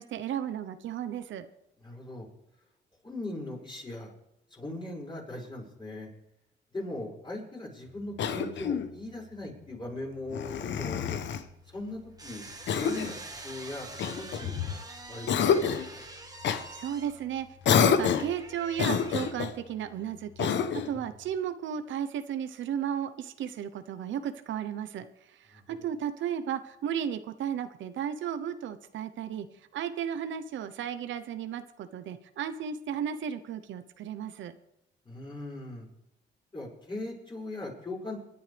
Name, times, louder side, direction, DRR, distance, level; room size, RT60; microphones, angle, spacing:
voice 1, 0.0-1.5 16.7-17.5 17.8-25.1 25.4-29.5 29.7-34.5, right 9 dB, 75° right, 10 dB, 1.0 m, -34 dB
voice 2, 1.8-2.3 3.0-4.1 4.5-6.1 6.7-11.2 11.7-12.4 12.8-13.1 13.4-16.0 20.9-21.0 25.5-25.6 35.0-35.9 36.5-38.2, left 2 dB, 25° left, -3 dB, 6.2 m, -39 dB
Cough, 8.2-8.9 10.3-11.5 12.7-13.2 14.0-14.8 15.3-15.9 16.4-16.6 17.6-18.4 18.8-19.6 20.4-21.0, left 7 dB, 65° left, 1.0 m, -27 dB
sound 1, 11.3-19.3, right 2 dB, 20° right, 2.0 m, -46 dB
28.5 x 10.5 x 3.5 m, 0.87 s
cardioid pair, 90°, 20 cm